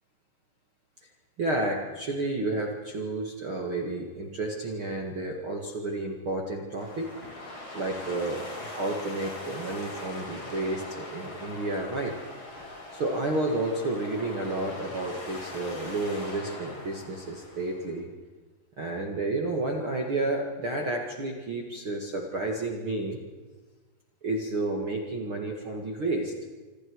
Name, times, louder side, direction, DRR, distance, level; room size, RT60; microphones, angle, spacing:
voice 1, 1.4-7.1 7.7-12.2 12.9-18.1 18.8-23.2 24.2-26.3, right 2 dB, 60° right, 1 dB, 1.3 m, -31 dB
sound 1, 6.8-17.9, left 2 dB, 25° left, 4.5 m, -41 dB
27.0 x 27.0 x 4.8 m, 1.3 s
omnidirectional pair, 5.9 m